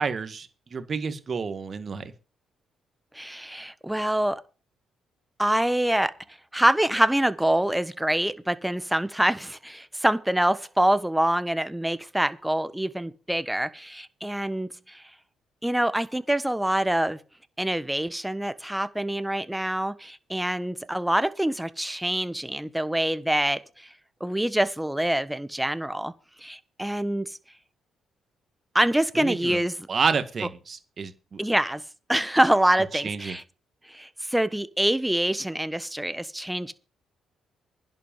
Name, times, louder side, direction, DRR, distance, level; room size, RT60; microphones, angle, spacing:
voice 1, 0.0-2.1 29.2-29.6 29.9-31.4 32.9-33.4, right 5 dB, 40° right, 1.9 m, -29 dB
voice 2, 3.1-4.4 5.4-6.1 6.5-15.0 15.6-17.2 17.6-23.9 24.2-26.1 26.4-27.4 28.7-29.9 31.4-31.8 32.1-33.4 33.9-36.7, right 1 dB, 5° right, 1.2 m, -25 dB
11.0 x 7.9 x 7.4 m
cardioid pair, 90°, 0 cm